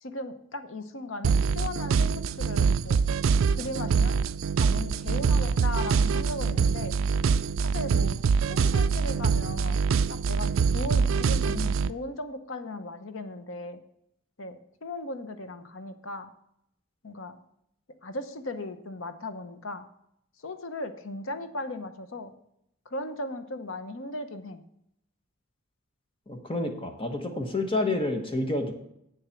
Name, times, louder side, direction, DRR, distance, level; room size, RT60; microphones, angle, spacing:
voice 1, 0.0-3.1 3.5-4.2 4.6-6.9 7.6-8.2 8.5-13.8 14.4-16.3 17.0-17.4 18.0-19.8 20.4-22.3 22.9-24.6, left 2 dB, 65° left, 9 dB, 0.9 m, -37 dB
sound 1, 1.2-11.9, right 5 dB, 65° right, 0.3 m, -24 dB
voice 2, 26.3-28.7, left 2 dB, 25° left, 4 dB, 1.1 m, -29 dB
8.1 x 7.1 x 5.8 m, 0.77 s
head